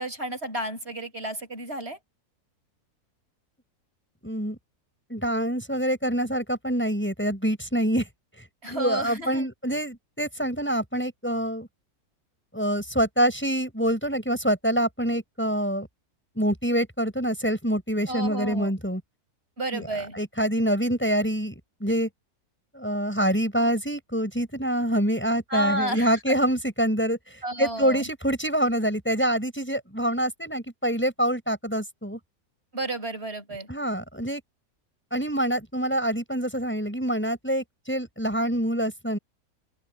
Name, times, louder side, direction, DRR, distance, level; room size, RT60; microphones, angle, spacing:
voice 1, 0.0-2.0 8.6-9.5 18.1-18.7 19.6-20.2 25.5-26.4 27.4-28.1 32.7-33.7, right 1 dB, 40° right, 5.8 m, -31 dB
voice 2, 4.2-4.6 5.1-8.1 8.7-11.7 12.5-15.9 16.4-19.0 19.7-19.9 20.2-22.1 22.7-27.2 27.6-32.2 33.7-34.4 35.1-39.2, equal, 5° left, 5.8 m, -26 dB
open air
omnidirectional pair, 1.6 m